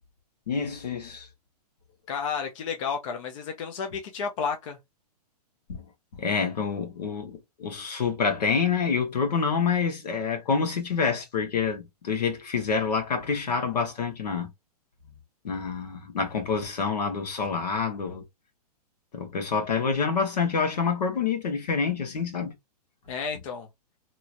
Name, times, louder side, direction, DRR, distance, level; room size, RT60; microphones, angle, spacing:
voice 1, 0.5-1.3 5.7-5.8 6.1-14.5 15.4-18.2 19.1-22.5, left 5 dB, 80° left, 1.4 m, -27 dB
voice 2, 2.1-4.8 23.1-23.7, left 6 dB, 50° left, 0.8 m, -31 dB
3.0 x 2.9 x 2.5 m
hypercardioid pair, 140°, 21 cm